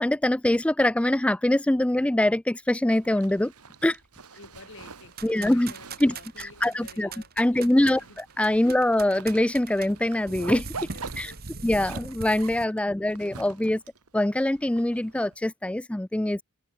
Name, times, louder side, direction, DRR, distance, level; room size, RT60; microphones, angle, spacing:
voice 1, 0.0-3.5 3.8-4.0 5.2-5.7 6.0-7.1 7.4-8.0 8.4-10.7 11.2-11.3 11.6-13.8 14.1-16.4, left 1 dB, 5° left, 0.3 m, -23 dB
Zipper (clothing), 2.9-15.4, right 4 dB, 85° right, 2.2 m, -45 dB
voice 2, 4.4-8.2 8.6-8.8 10.9-11.7 12.9-13.3, left 3 dB, 60° left, 3.9 m, -51 dB
sound 1, 5.1-12.6, right 4 dB, 45° right, 1.8 m, -41 dB
head